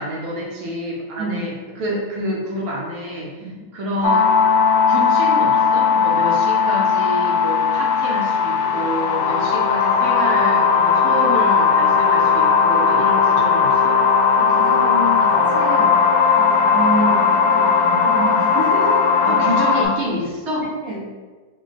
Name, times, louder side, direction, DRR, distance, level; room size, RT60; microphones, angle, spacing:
voice 1, 0.0-3.3 3.7-4.4 4.9-14.0 19.2-20.7, equal, 65° right, -2 dB, 1.1 m, -28 dB
sound 1, 4.0-19.8, left 5 dB, 85° left, 1.3 m, -17 dB
voice 2, 14.4-16.0 16.4-19.4 20.4-21.0, right 1 dB, 20° left, -8 dB, 0.4 m, -28 dB
4.5 x 2.2 x 3.5 m, 1.4 s
omnidirectional pair, 1.9 m